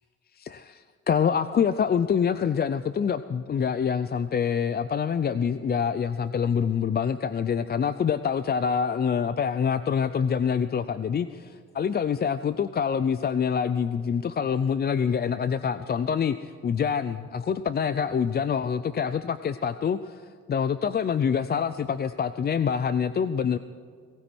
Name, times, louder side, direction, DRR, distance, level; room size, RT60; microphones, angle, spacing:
voice 1, 0.4-20.2 20.5-23.6, left 7 dB, 35° left, 13 dB, 0.5 m, -26 dB
18.5 x 17.5 x 4.4 m, 2.2 s
cardioid pair, 90°, 30 cm